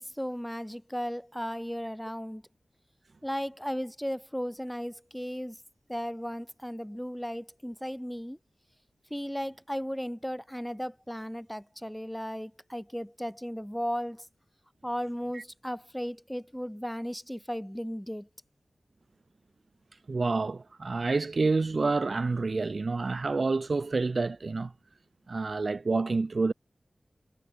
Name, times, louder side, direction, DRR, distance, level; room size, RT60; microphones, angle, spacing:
voice 1, 0.0-2.4 3.2-5.6 5.9-8.4 9.1-14.3 14.8-18.3, equal, 5° left, 3.1 m, -35 dB
voice 2, 20.1-24.7 25.3-26.5, right 3 dB, 65° right, 0.5 m, -28 dB
cardioid pair, 45°, 0 cm